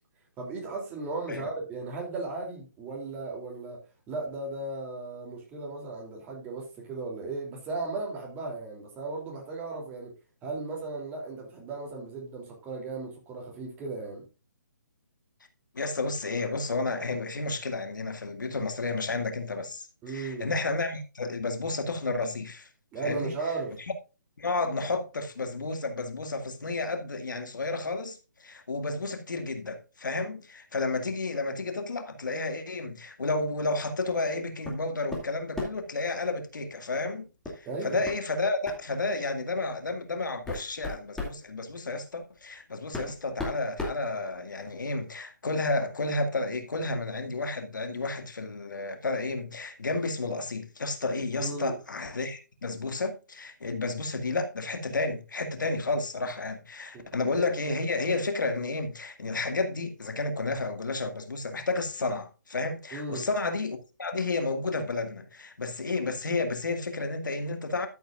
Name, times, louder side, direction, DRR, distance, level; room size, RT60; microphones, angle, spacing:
voice 1, 0.4-10.1 10.4-14.2 20.0-20.5 22.9-23.7 37.6-38.0 51.4-51.8 56.9-57.0 62.9-63.3, right 3 dB, 15° right, 2.9 m, -36 dB
voice 2, 15.7-22.7 23.0-23.3 24.4-37.3 37.5-67.9, left 3 dB, 85° left, 2.1 m, -31 dB
sound 1, 34.6-34.8 35.1-35.9 37.4-37.6 38.0-38.2 38.6-38.9 39.7-39.8 40.3-41.4 42.4-42.5 42.9-44.7, left 2 dB, 5° left, 2.5 m, -36 dB
13.0 x 8.2 x 2.4 m
hypercardioid pair, 160°, 10 cm